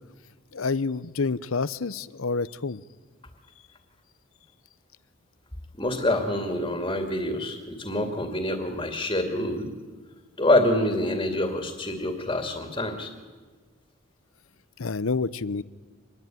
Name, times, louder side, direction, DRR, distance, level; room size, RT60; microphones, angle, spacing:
voice 1, 0.5-2.8 14.8-15.6, left 4 dB, 80° left, 18 dB, 0.8 m, -28 dB
voice 2, 5.8-9.7 10.4-13.1, left 1 dB, 20° left, 5 dB, 2.5 m, -26 dB
26.0 x 21.0 x 9.3 m, 1.5 s
head